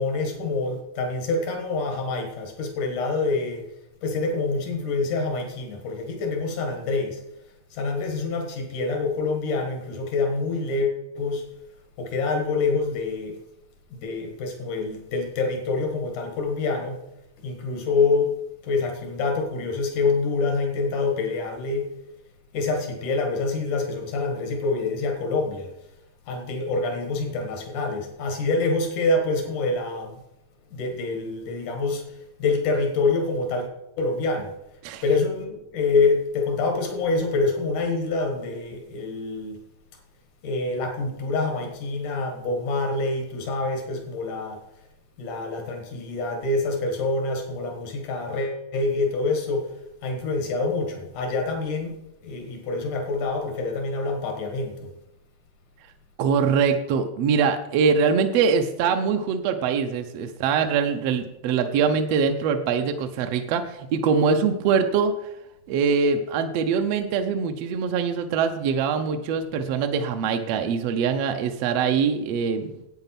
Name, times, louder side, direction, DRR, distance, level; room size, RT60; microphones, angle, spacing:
voice 1, 0.0-3.7 4.0-7.2 7.7-11.4 12.0-13.4 13.9-17.0 17.4-18.3 18.6-21.9 22.5-25.7 26.3-30.1 30.7-33.7 34.0-34.5 35.0-39.6 40.4-44.6 45.2-49.7 50.0-52.0 52.2-54.9, left 3 dB, 90° left, 3 dB, 3.3 m, -26 dB
voice 2, 56.2-65.1 65.7-72.7, right 6 dB, 70° right, 6 dB, 1.7 m, -23 dB
11.0 x 8.9 x 5.8 m, 0.85 s
omnidirectional pair, 3.4 m